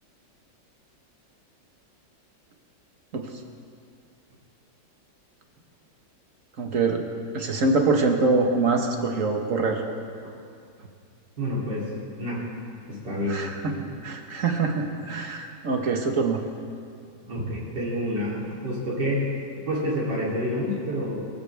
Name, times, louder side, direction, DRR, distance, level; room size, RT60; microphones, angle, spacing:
voice 1, 6.6-7.0 7.3-9.8 13.3-13.7 14.0-16.4, right 3 dB, 45° right, 3 dB, 1.6 m, -24 dB
voice 2, 11.4-11.9 12.2-12.5 12.9-13.4 13.8-13.9 17.2-21.2, equal, 65° right, -7 dB, 3.9 m, -28 dB
23.5 x 14.5 x 3.5 m, 2.3 s
omnidirectional pair, 2.0 m